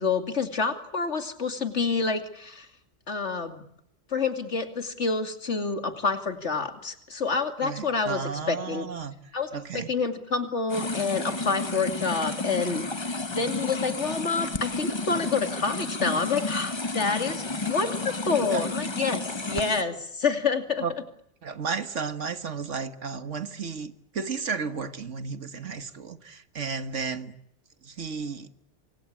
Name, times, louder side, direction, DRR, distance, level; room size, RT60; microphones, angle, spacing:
voice 1, 0.0-2.7 3.1-3.6 4.1-8.2 8.5-8.9 9.3-9.5 9.7-13.0 13.3-20.8, left 4 dB, 75° left, 2.9 m, -28 dB
voice 2, 7.6-9.9 18.3-18.6 20.8-20.9 21.4-27.4 27.8-28.5, right 5 dB, 90° right, 1.9 m, -33 dB
sound 1, 10.7-19.8, left 2 dB, 25° left, 1.2 m, -32 dB
28.5 x 23.0 x 8.7 m
omnidirectional pair, 1.2 m